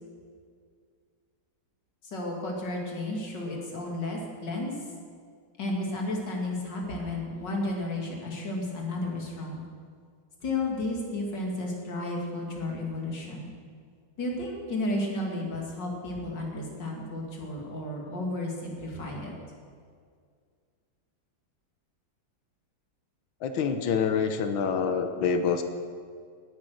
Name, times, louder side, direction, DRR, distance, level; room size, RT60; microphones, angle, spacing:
voice 1, 2.0-4.7 5.6-9.6 10.4-13.5 14.2-19.3, left 2 dB, 65° left, 0 dB, 3.2 m, -32 dB
voice 2, 23.4-25.6, left 6 dB, 90° left, 7 dB, 1.8 m, -26 dB
18.5 x 9.4 x 6.4 m, 2.1 s
omnidirectional pair, 2.1 m